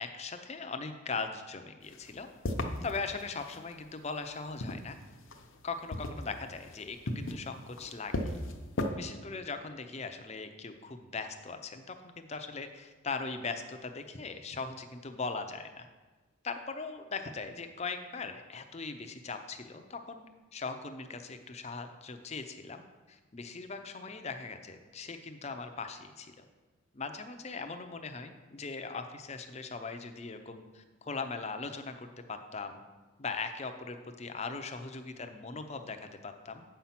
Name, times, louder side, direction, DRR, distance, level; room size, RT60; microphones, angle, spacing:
voice 1, 0.0-2.3 2.8-5.0 5.6-8.3 8.9-15.9 16.4-20.2 20.5-26.4 26.9-32.8 33.2-36.6, left 4 dB, 30° left, 7 dB, 0.6 m, -40 dB
sound 1, 1.8-3.7 4.3-5.6 5.9-8.9, left 1 dB, 70° left, 0.8 m, -36 dB
8.3 x 5.6 x 5.9 m, 1.3 s
head